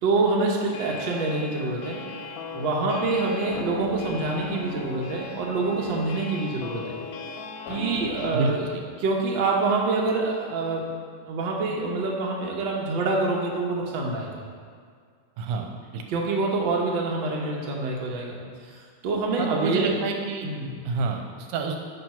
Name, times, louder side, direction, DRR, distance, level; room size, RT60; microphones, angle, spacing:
voice 1, 0.0-2.0 2.5-7.0 7.7-8.7 9.0-10.9 11.2-14.3 16.1-18.4 18.7-18.8 19.0-20.1 20.4-20.8, right 3 dB, 70° right, -2 dB, 1.1 m, -26 dB
sound 1, 0.6-8.4, left 3 dB, 90° left, 2.2 m, -37 dB
voice 2, 8.3-8.7 15.4-15.7 15.9-16.0 19.4-20.5 20.9-21.8, right 4 dB, 90° right, 3 dB, 2.2 m, -28 dB
8.8 x 3.4 x 5.8 m, 2.1 s
omnidirectional pair, 3.6 m